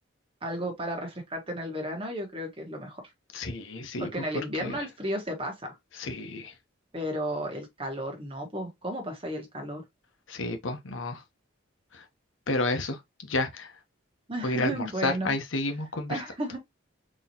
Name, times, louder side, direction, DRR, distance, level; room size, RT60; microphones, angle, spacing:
voice 1, 0.4-3.0 4.0-5.8 6.9-9.8 14.3-15.3 16.1-16.6, right 1 dB, 25° right, 1.2 m, -33 dB
voice 2, 3.3-4.2 4.6-4.8 6.0-6.5 10.3-11.2 11.9-12.0 12.5-13.7 14.4-16.2, left 2 dB, 75° left, 0.8 m, -31 dB
4.0 x 3.0 x 2.8 m
head